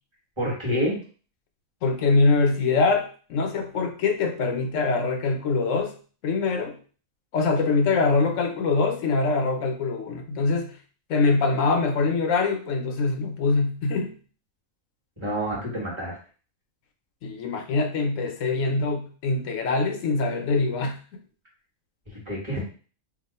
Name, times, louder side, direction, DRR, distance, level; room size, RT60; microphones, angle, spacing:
voice 1, 0.4-1.0 15.2-16.2 22.1-22.6, equal, 20° right, -5 dB, 1.4 m, -28 dB
voice 2, 1.8-6.0 6.2-6.8 7.3-10.8 11.1-14.2 17.2-21.0, left 3 dB, 70° left, 5 dB, 0.9 m, -23 dB
2.9 x 2.4 x 4.1 m, 0.39 s
omnidirectional pair, 1.4 m